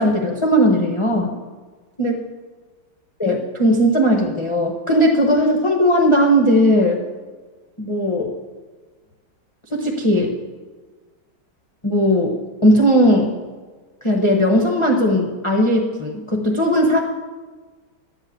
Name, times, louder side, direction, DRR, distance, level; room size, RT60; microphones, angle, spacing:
voice 1, 0.0-1.3 2.0-2.3 3.2-7.0 7.8-8.3 9.7-10.4 11.8-13.3 14.0-17.0, equal, 30° left, 0 dB, 0.6 m, -17 dB
11.5 x 5.6 x 8.6 m, 1.4 s
omnidirectional pair, 2.3 m